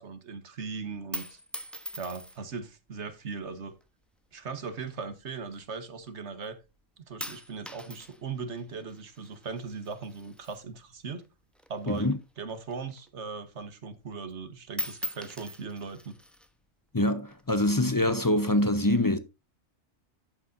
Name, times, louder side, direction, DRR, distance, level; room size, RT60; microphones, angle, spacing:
voice 1, 0.0-1.4 2.0-3.7 4.3-6.6 7.0-11.2 11.7-16.2, right 5 dB, 60° right, 1.5 m, -39 dB
sound 1, 0.9-2.6 3.4-3.9 4.7-6.1 6.4-6.8 7.2-11.3 11.5-13.2 13.6-13.7 14.0-14.4 14.7-16.5 17.3-17.9, equal, ahead, 0.9 m, -42 dB
voice 2, 11.9-12.2 16.9-19.2, left 1 dB, 20° left, 0.7 m, -25 dB
11.5 x 8.3 x 2.7 m
omnidirectional pair, 1.3 m